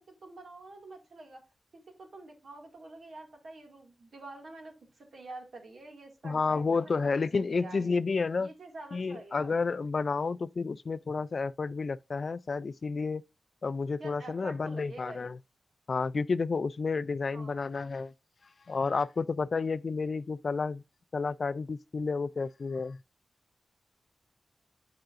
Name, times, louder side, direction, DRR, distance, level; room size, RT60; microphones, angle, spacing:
voice 1, 0.0-1.4 1.7-7.0 7.3-7.9 8.4-9.6 14.0-15.3 17.3-17.7, right 2 dB, 65° right, 2.0 m, -47 dB
voice 2, 6.2-8.5 8.9-13.2 13.6-15.4 15.9-18.1 18.7-20.8 21.1-23.0, left 4 dB, 50° left, 0.3 m, -31 dB
10.5 x 4.9 x 2.5 m
wide cardioid pair, 130°, 0 cm